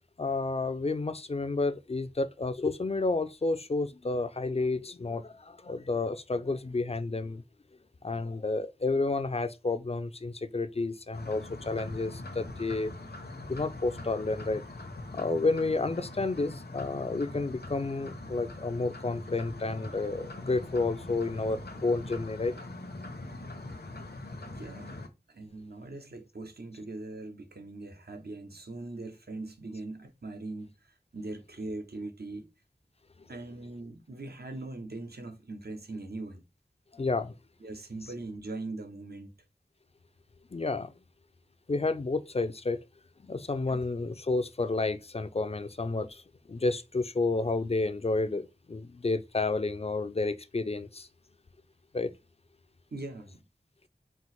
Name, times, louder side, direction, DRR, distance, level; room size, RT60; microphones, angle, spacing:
voice 1, 0.2-7.4 8.0-12.9 13.5-14.6 15.1-22.5 36.9-37.3 38.0-38.1 40.5-40.9 41.7-42.8 43.2-46.2 46.5-51.1 51.9-52.1, left 3 dB, 40° left, 0.4 m, -30 dB
sound 1, 11.1-25.1, left 2 dB, 80° left, 0.8 m, -42 dB
voice 2, 24.4-25.0 25.3-32.5 33.3-36.4 37.6-39.3 43.7-43.8 52.9-53.4, right 2 dB, 75° right, 0.8 m, -41 dB
4.4 x 2.0 x 4.2 m
wide cardioid pair, 45°, 16 cm